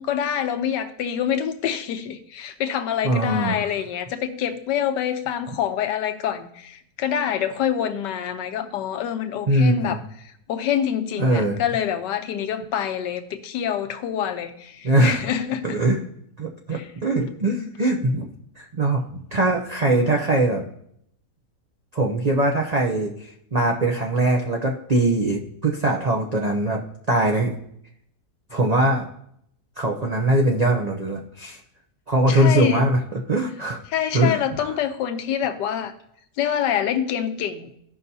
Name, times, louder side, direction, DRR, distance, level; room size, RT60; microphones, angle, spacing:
voice 1, 0.0-15.8 16.7-16.9 32.3-32.8 33.9-35.9 36.4-37.7, left 9 dB, 90° left, 7 dB, 1.4 m, -26 dB
voice 2, 3.0-3.7 9.5-10.0 11.2-11.6 14.8-15.2 15.6-16.0 16.4-18.3 18.6-20.6 21.9-23.1 23.5-26.8 27.1-27.5 28.5-29.0 29.8-31.6 32.1-33.0 33.3-33.8 34.1-34.4, right 1 dB, 80° right, 0 dB, 0.3 m, -21 dB
14.5 x 5.6 x 2.7 m, 0.72 s
omnidirectional pair, 1.8 m